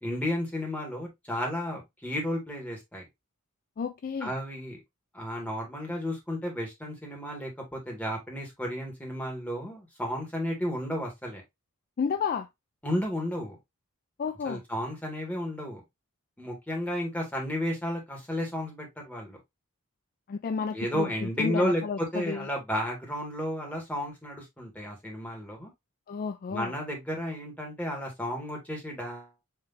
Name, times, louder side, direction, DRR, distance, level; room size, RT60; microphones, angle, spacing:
voice 1, 0.0-3.1 4.2-4.8 5.1-11.4 12.8-13.6 14.5-15.8 16.4-19.4 20.7-25.7 26.5-29.3, equal, 5° left, 1.9 m, -33 dB
voice 2, 3.8-4.3 12.0-12.5 14.2-14.6 20.3-22.5 26.1-26.7, left 5 dB, 40° left, 0.3 m, -32 dB
5.9 x 3.2 x 2.6 m
head